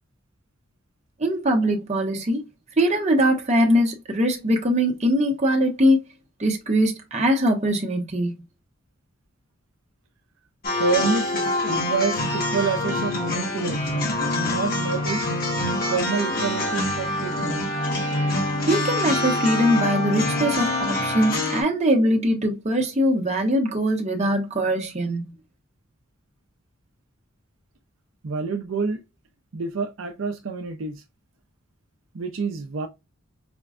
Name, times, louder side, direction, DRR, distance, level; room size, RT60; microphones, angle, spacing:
voice 1, 1.2-2.4 2.8-6.0 6.4-8.3 18.7-25.3, equal, 30° right, 0.8 m, -22 dB
sound 1, 10.6-21.6, left 2 dB, 45° left, 1.0 m, -25 dB
voice 2, 10.8-15.2 15.9-17.7 28.2-29.0 29.5-31.0 32.1-32.9, right 4 dB, 70° right, 0.5 m, -28 dB
5.0 x 2.2 x 2.4 m
head